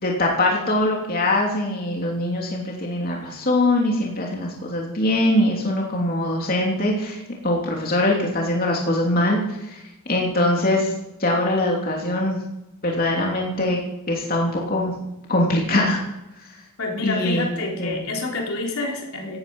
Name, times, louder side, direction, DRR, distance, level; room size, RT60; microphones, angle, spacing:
voice 1, 0.0-9.8 10.1-10.9 11.2-12.4 12.8-13.8 14.1-14.9 15.3-16.0 17.0-17.5 17.8-18.0, left 1 dB, 45° left, -1 dB, 3.0 m, -22 dB
voice 2, 16.8-19.4, left 2 dB, 80° left, 0 dB, 3.7 m, -28 dB
17.5 x 11.0 x 5.5 m, 0.93 s
head